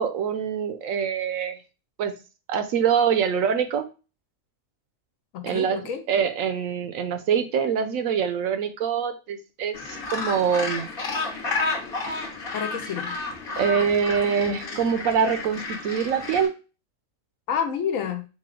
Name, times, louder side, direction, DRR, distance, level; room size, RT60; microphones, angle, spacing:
voice 1, 0.0-1.6 2.0-2.1 2.5-3.9 5.4-5.8 6.1-9.8 10.1-10.9 13.6-16.5, right 7 dB, 80° right, 9 dB, 1.0 m, -24 dB
voice 2, 5.3-6.0 12.5-13.1 17.5-18.3, left 7 dB, 75° left, 7 dB, 1.0 m, -29 dB
Gull seagull, 9.7-16.5, left 3 dB, 45° left, 1.0 m, -31 dB
4.1 x 2.3 x 3.7 m, 0.32 s
omnidirectional pair, 1.4 m